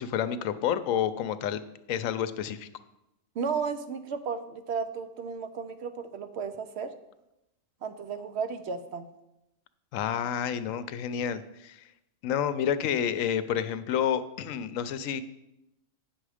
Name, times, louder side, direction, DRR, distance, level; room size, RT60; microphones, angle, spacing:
voice 1, 0.0-1.6 1.9-2.7 9.9-11.8 12.2-15.2, left 9 dB, 80° left, 12 dB, 1.0 m, -29 dB
voice 2, 3.4-6.9 7.8-9.1, right 5 dB, 65° right, 10 dB, 0.8 m, -34 dB
8.8 x 6.1 x 4.9 m, 0.90 s
omnidirectional pair, 1.3 m